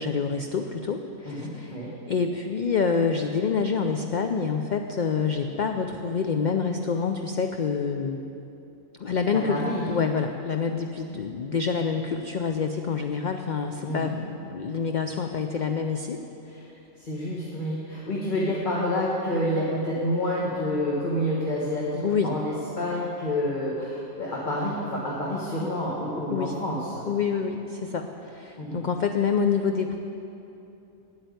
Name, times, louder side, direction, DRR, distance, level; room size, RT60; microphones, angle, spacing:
voice 1, 0.0-1.7 2.1-8.2 9.0-16.2 22.0-22.4 26.3-26.5 27.1-30.0, left 5 dB, 60° left, 5 dB, 0.5 m, -27 dB
voice 2, 1.2-1.9 9.3-9.8 13.8-14.2 16.5-16.6 17.0-27.1 28.6-28.8, left 1 dB, 40° left, -5 dB, 1.4 m, -28 dB
8.8 x 8.7 x 9.3 m, 2.9 s
omnidirectional pair, 1.3 m